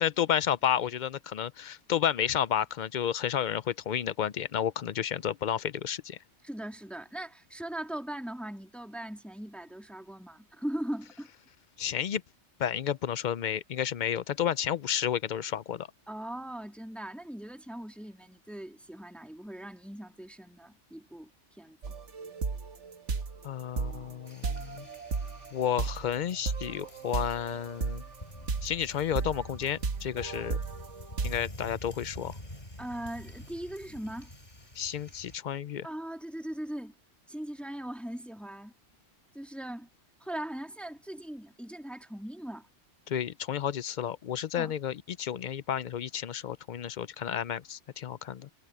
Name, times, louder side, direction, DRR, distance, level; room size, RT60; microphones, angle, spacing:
voice 1, 0.0-6.2 11.8-12.2 12.6-15.9 23.4-24.9 25.5-28.0 28.6-30.6 31.2-32.4 34.8-35.9 43.1-48.5, left 9 dB, 55° left, 0.5 m, -31 dB
voice 2, 6.4-11.3 16.1-21.3 21.6-21.8 32.8-34.3 35.8-36.9 37.3-38.7 39.3-39.9 40.2-42.7 44.5-44.7, right 1 dB, ahead, 1.8 m, -39 dB
sound 1, 21.8-31.4, right 4 dB, 75° right, 1.6 m, -35 dB
sound 2, 24.3-35.4, left 1 dB, 35° left, 5.2 m, -47 dB
omnidirectional pair, 1.2 m